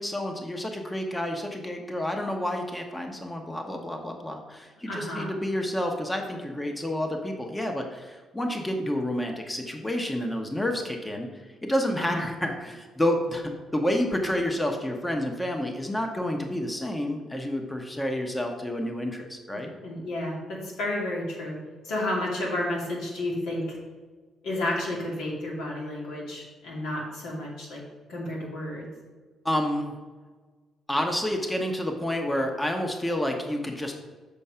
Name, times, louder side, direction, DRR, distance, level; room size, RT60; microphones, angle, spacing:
voice 1, 0.0-19.7 29.4-29.9 30.9-33.9, left 1 dB, 15° left, 3 dB, 0.9 m, -29 dB
voice 2, 4.9-5.3 12.1-12.2 19.5-21.5 21.8-23.6 24.4-27.8 28.1-28.9, left 1 dB, 85° left, -3 dB, 2.4 m, -31 dB
7.1 x 4.6 x 5.5 m, 1.4 s
cardioid pair, 90°, 0 cm